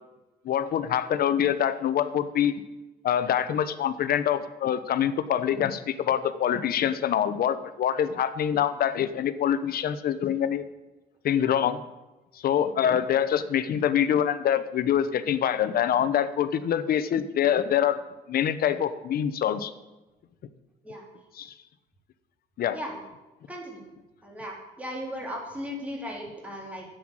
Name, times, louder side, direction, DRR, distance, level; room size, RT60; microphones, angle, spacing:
voice 1, 0.4-2.5 3.0-10.6 11.2-11.8 12.4-18.0 18.3-19.7 21.3-21.5 22.6-22.8, left 9 dB, 60° left, 13 dB, 0.9 m, -25 dB
voice 2, 23.5-23.8 24.2-26.9, equal, 10° right, -2 dB, 3.5 m, -36 dB
10.0 x 7.8 x 8.9 m, 1.1 s
cardioid pair, 120°, 17 cm